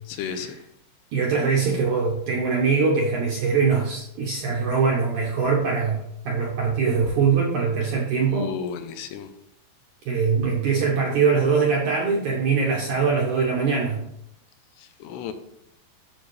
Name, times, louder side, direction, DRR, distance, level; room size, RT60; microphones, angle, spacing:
voice 1, 0.1-0.6 7.8-7.9 8.3-9.3 14.8-15.3, left 7 dB, 80° left, 8 dB, 2.7 m, -33 dB
voice 2, 1.1-8.5 10.1-14.0, right 5 dB, 70° right, -2 dB, 1.9 m, -22 dB
9.5 x 7.0 x 3.2 m, 0.73 s
omnidirectional pair, 5.0 m